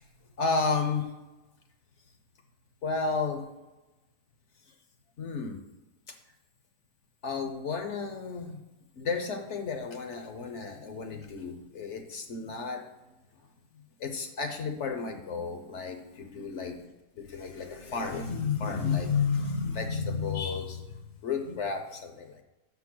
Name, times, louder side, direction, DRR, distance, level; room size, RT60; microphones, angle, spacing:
voice 1, 0.4-1.1 2.8-3.4 5.2-5.6 6.1-6.2 7.2-8.6 8.9-12.8 14.0-16.9 17.2-22.4, left 5 dB, 55° left, 5 dB, 1.0 m, -32 dB
6.0 x 5.5 x 6.1 m, 1.0 s
omnidirectional pair, 1.7 m